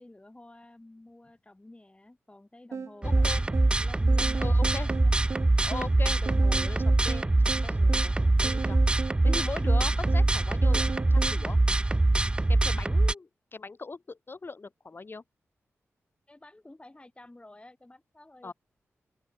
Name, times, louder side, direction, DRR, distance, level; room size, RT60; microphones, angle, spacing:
voice 1, 0.0-5.1 16.3-18.5, left 2 dB, 20° left, 2.6 m, -51 dB
sound 1, 2.7-11.4, right 5 dB, 65° right, 1.1 m, -38 dB
voice 2, 3.0-3.4 4.4-4.9 5.6-7.3 7.6-8.8 9.2-11.6 12.5-15.2 18.4-18.5, left 3 dB, 45° left, 1.5 m, -40 dB
sound 2, 3.0-13.1, right 2 dB, 20° right, 0.3 m, -24 dB
open air
cardioid pair, 50°, 5 cm